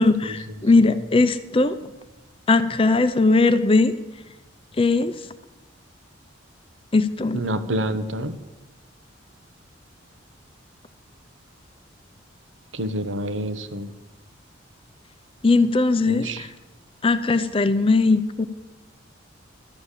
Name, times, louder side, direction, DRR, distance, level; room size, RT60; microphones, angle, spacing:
voice 1, 0.0-1.7 2.5-3.9 4.8-5.1 6.9-7.4 15.4-16.3 17.0-18.5, left 3 dB, 30° left, 12 dB, 0.5 m, -19 dB
voice 2, 7.3-8.3 12.7-13.9 16.1-16.4, right 1 dB, 75° right, 10 dB, 1.0 m, -28 dB
12.0 x 7.1 x 9.9 m, 1.1 s
head